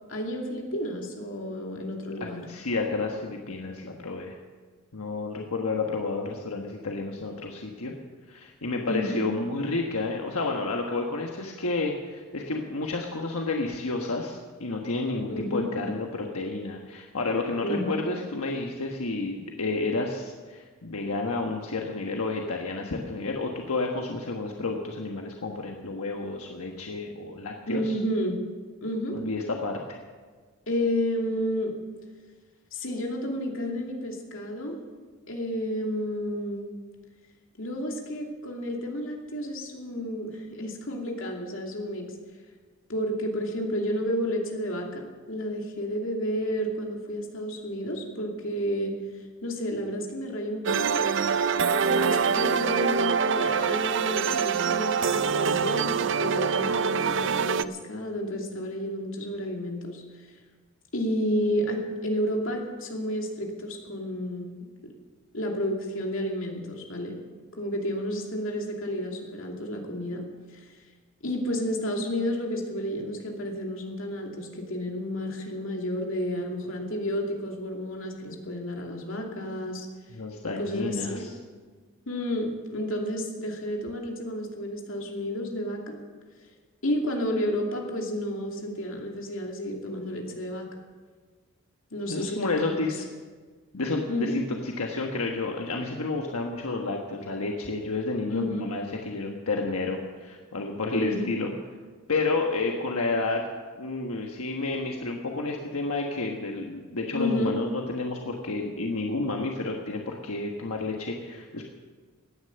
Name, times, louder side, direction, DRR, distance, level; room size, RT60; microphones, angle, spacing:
voice 1, 0.1-2.4 8.9-9.2 15.3-15.7 17.6-17.9 27.7-28.4 28.8-29.2 30.7-31.8 32.7-34.7 35.3-36.6 37.6-42.0 42.9-48.9 49.4-51.0 51.9-60.0 60.9-64.6 65.3-67.2 67.5-70.2 70.5-70.7 71.2-79.9 80.4-81.2 82.1-86.0 86.8-90.7 91.9-92.8 94.1-94.4 98.3-98.6 100.9-101.3 107.1-107.6, equal, 65° left, 0 dB, 2.7 m, -31 dB
voice 2, 2.5-4.4 4.9-7.9 8.3-28.0 29.1-30.0 80.1-81.3 92.1-93.0 93.7-101.5 102.1-103.4 103.8-111.6, left 3 dB, 90° left, 1 dB, 1.3 m, -30 dB
sound 1, 50.7-57.6, right 6 dB, 55° right, 0.5 m, -25 dB
17.0 x 10.0 x 6.9 m, 1.4 s
head